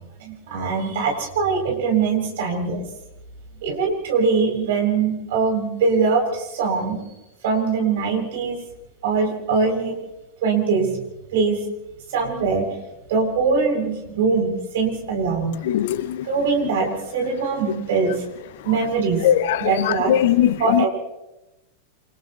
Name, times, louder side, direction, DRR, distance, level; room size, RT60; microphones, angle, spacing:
voice 1, 0.2-2.8 3.6-7.0 7.4-8.6 9.0-9.9 10.4-11.0 11.3-11.6 12.1-12.7 13.1-15.6 16.2-18.2 18.6-19.2 19.6-20.1 20.6-20.9, right 5 dB, 55° right, 1 dB, 7.7 m, -22 dB
voice 2, 15.6-16.2 19.2-20.9, left 11 dB, 55° left, 16 dB, 1.0 m, -20 dB
29.5 x 29.0 x 3.2 m, 0.96 s
figure-of-eight pair, 90°, 0 cm